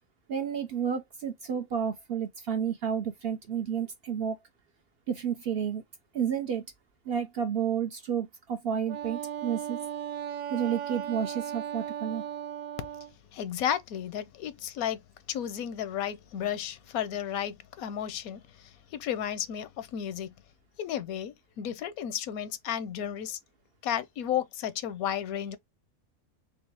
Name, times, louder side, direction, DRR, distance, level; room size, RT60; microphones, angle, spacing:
voice 1, 0.3-4.4 5.1-5.8 6.1-6.6 7.1-9.8 10.5-12.2, right 8 dB, 60° right, 0.6 m, -31 dB
Wind instrument woodwind instrument, 8.9-13.1, right 10 dB, 75° right, 1.0 m, -36 dB
voice 2, 13.3-15.0 15.3-20.3 20.8-23.4 23.8-25.6, left 10 dB, 85° left, 1.1 m, -33 dB
3.9 x 3.3 x 2.7 m
omnidirectional pair, 1.4 m